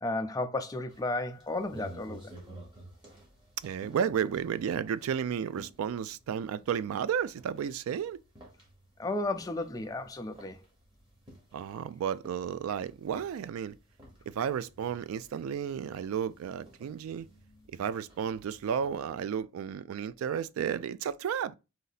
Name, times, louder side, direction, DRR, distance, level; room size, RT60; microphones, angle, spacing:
voice 1, 0.0-2.3 9.0-10.6, left 2 dB, 15° left, 0.4 m, -33 dB
sound 1, 0.9-19.1, right 1 dB, 25° right, 1.4 m, -54 dB
voice 2, 3.6-8.2 11.5-13.8 14.3-17.3 17.7-21.5, right 8 dB, 80° right, 0.3 m, -33 dB
3.9 x 2.7 x 3.9 m
head